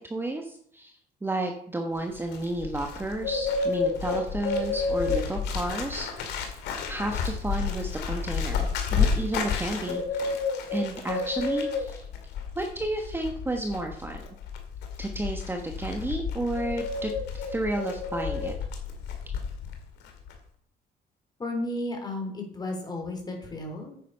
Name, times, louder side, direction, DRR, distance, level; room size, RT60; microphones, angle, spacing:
voice 1, 0.1-6.6 6.9-10.4 10.7-12.1 12.5-14.2 15.0-18.5, right 2 dB, 15° right, 3 dB, 1.2 m, -32 dB
Bird, 2.0-19.8 20.0-20.4, left 5 dB, 85° left, 2.3 m, -30 dB
voice 2, 21.4-24.1, left 1 dB, 25° left, 2 dB, 3.6 m, -33 dB
9.5 x 8.3 x 5.6 m, 0.64 s
cardioid pair, 110°, 17 cm